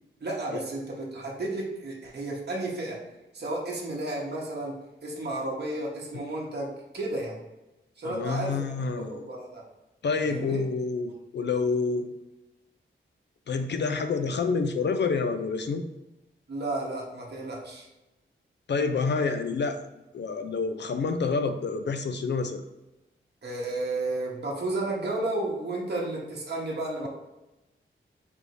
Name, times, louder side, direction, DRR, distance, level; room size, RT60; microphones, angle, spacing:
voice 1, 0.2-3.0 3.3-4.7 5.0-7.4 8.0-8.5 9.1-9.6 10.2-10.6 16.5-17.9 23.4-27.1, right 2 dB, 55° right, -3 dB, 1.0 m, -32 dB
voice 2, 8.0-9.2 10.0-12.1 13.5-15.8 18.7-19.8 20.1-22.6, left 4 dB, 60° left, 8 dB, 0.4 m, -28 dB
3.5 x 2.6 x 4.5 m, 0.98 s
wide cardioid pair, 75°, 21 cm